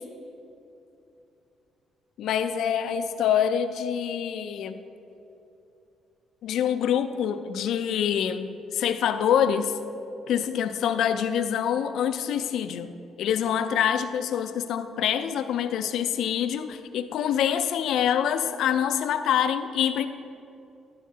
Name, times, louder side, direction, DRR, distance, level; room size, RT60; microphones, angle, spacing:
voice 1, 2.2-4.8 6.4-9.7 10.3-12.9 13.2-20.1, left 9 dB, 80° left, 10 dB, 0.4 m, -25 dB
11.5 x 11.0 x 2.8 m, 2.8 s
cardioid pair, 90°, 0 cm